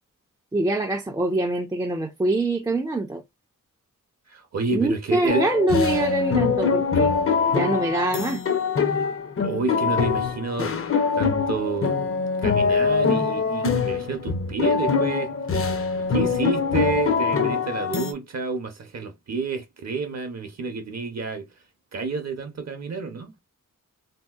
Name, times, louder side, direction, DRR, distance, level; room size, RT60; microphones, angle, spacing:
voice 1, 0.5-3.2 4.7-7.1 7.5-8.4, right 2 dB, 10° right, 0.3 m, -24 dB
voice 2, 4.3-5.5 9.4-10.7 11.1-12.0 12.4-15.3 16.0-21.5 21.9-23.3, right 4 dB, 55° right, 0.6 m, -29 dB
sound 1, 5.3-18.1, left 5 dB, 40° left, 0.6 m, -23 dB
3.5 x 2.7 x 2.2 m
wide cardioid pair, 170°, 33 cm